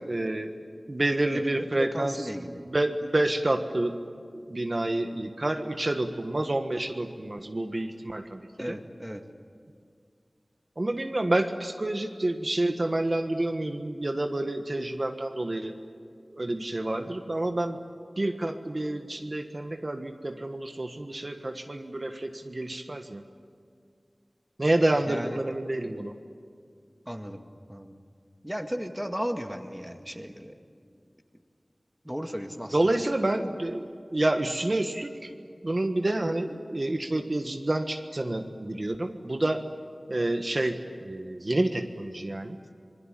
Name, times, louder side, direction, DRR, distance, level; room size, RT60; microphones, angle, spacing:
voice 1, 0.1-0.5 0.9-2.3 2.6-4.0 4.5-8.4 8.7-8.8 10.8-15.7 16.3-17.8 18.2-23.2 24.6-26.1 32.7-35.3 35.6-39.6 40.1-42.6, right 1 dB, 50° right, 6 dB, 1.4 m, -28 dB
voice 2, 1.3-2.6 8.6-9.2 25.1-25.4 27.1-27.4 27.7-27.9 28.4-30.6 32.0-32.8, equal, 5° right, 5 dB, 2.0 m, -35 dB
26.5 x 21.0 x 9.1 m, 2.2 s
wide cardioid pair, 40°, 0 cm